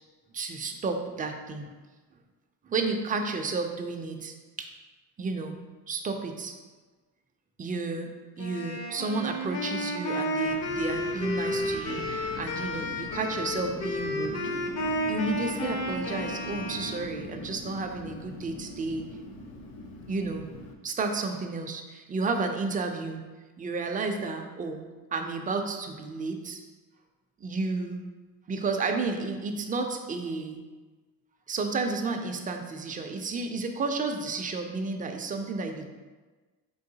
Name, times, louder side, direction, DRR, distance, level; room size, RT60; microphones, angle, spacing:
voice 1, 0.3-1.7 2.6-4.7 5.2-5.6 5.9-6.5 7.6-8.1 8.4-14.4 15.1-19.1 20.1-20.5 20.8-23.2 23.6-24.8 25.1-26.6 27.4-28.0 28.5-30.6 31.5-35.9, right 3 dB, 25° right, 4 dB, 0.4 m, -32 dB
Wind instrument woodwind instrument, 8.4-17.1, left 1 dB, 45° left, 0.7 m, -32 dB
Wind, 10.5-20.7, left 2 dB, 80° left, 0.7 m, -42 dB
4.1 x 3.8 x 2.7 m, 1.3 s
cardioid pair, 110°, 36 cm